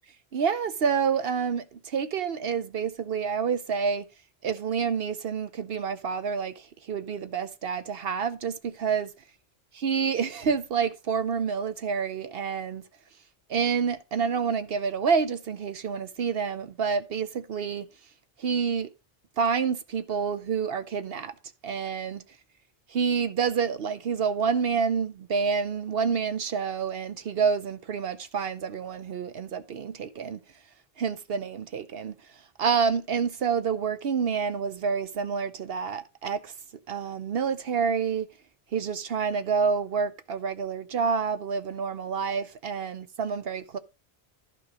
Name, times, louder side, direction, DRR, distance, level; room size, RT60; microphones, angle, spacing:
voice 1, 0.3-4.0 4.4-9.1 9.8-12.8 13.5-17.9 18.4-18.9 19.4-21.3 21.6-22.2 22.9-30.4 31.0-32.1 32.6-36.5 36.9-38.3 38.7-43.8, right 6 dB, 70° right, 0.9 m, -28 dB
11.5 x 5.5 x 5.0 m
omnidirectional pair, 1.1 m